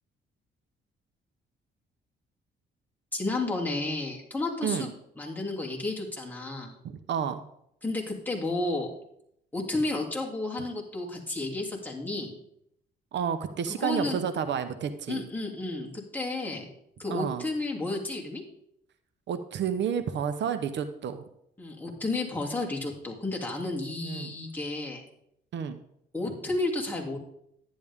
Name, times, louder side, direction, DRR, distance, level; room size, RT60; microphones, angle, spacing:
voice 1, 3.1-4.9 5.2-6.8 7.8-8.9 9.5-12.3 13.8-14.2 15.1-16.7 17.0-18.4 21.6-25.0 26.1-27.2, left 2 dB, 10° left, -2 dB, 2.8 m, -32 dB
voice 2, 6.8-7.4 13.1-15.3 17.1-17.4 19.3-21.2 24.0-24.3 25.5-25.8, right 7 dB, 65° right, 10 dB, 0.8 m, -30 dB
11.0 x 10.5 x 3.6 m, 0.74 s
cardioid pair, 90°, 20 cm